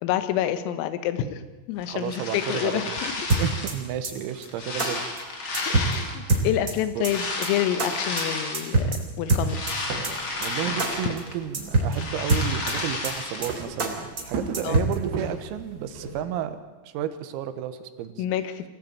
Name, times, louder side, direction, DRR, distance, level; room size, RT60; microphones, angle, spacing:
voice 1, 0.0-3.3 5.7-9.6 11.0-11.2 14.6-14.9 18.2-18.7, left 11 dB, 80° left, 12 dB, 3.8 m, -28 dB
sound 1, 1.8-3.9 4.3-6.4 7.0-8.8 9.2-11.4 11.7-13.6, left 2 dB, 35° left, 2.3 m, -32 dB
voice 2, 1.9-3.0 3.4-5.0 5.7-6.2 7.0-7.1 10.4-16.6 16.9-18.3, right 10 dB, 85° right, 10 dB, 4.0 m, -32 dB
sound 2, 3.3-3.7 4.0-4.1 4.4-4.5 4.8-4.9 5.2-5.3 5.5-5.9 6.3-6.7 7.0-7.1 7.4-7.5 7.8-7.9 8.2-8.3 8.5-9.0 9.3-9.7 10.0-10.1 10.4-10.5 10.8-10.9 11.2-11.3 11.5-11.9 12.3-12.7 13.0-13.1 13.4-13.5 13.8-13.9 14.2-14.3 14.5-14.9, right 2 dB, 20° right, 3.1 m, -23 dB
sound 3, 9.4-16.2, right 4 dB, 55° right, 4.5 m, -38 dB
24.5 x 17.0 x 9.0 m, 1.2 s
omnidirectional pair, 6.0 m